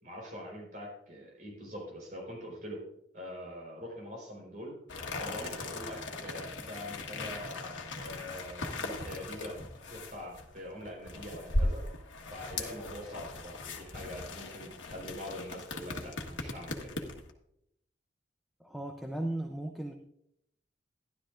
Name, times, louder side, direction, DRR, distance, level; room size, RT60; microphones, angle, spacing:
voice 1, 0.0-2.8 3.1-4.8 5.2-11.9 12.3-16.9, equal, 45° right, -2 dB, 4.3 m, -44 dB
sound 1, 4.9-17.3, left 2 dB, 85° left, 1.4 m, -38 dB
voice 2, 18.6-19.9, right 1 dB, ahead, 3 dB, 0.6 m, -36 dB
12.5 x 11.5 x 2.5 m, 0.75 s
head